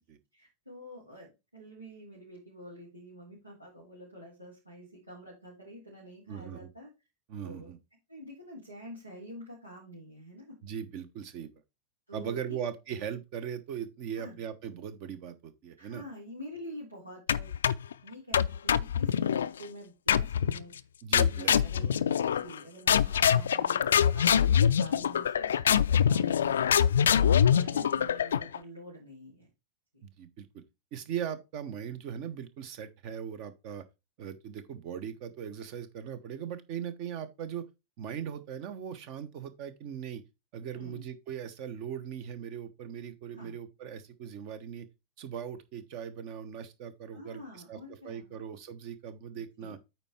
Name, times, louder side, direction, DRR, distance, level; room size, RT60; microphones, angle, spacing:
voice 1, 0.3-6.9 7.4-7.7 8.1-10.6 12.1-12.6 14.1-14.4 15.8-17.5 18.0-20.7 21.3-29.5 29.9-30.0 40.7-41.0 43.3-43.6 47.1-48.4 49.6-49.7, equal, 90° right, 3.5 m, -47 dB
voice 2, 6.3-6.7 7.3-7.8 10.6-11.5 12.1-16.0 21.0-21.9 25.7-25.8 30.0-30.6 30.9-33.8 34.2-37.6 38.0-40.2 40.5-44.9 45.2-49.8, right 8 dB, 45° right, 1.2 m, -39 dB
sound 1, 17.3-17.9 18.3-19.5 20.1-20.6 21.1-22.6 22.9-28.6, left 8 dB, 65° left, 0.4 m, -24 dB
8.8 x 4.6 x 4.4 m
figure-of-eight pair, 90°, 0 cm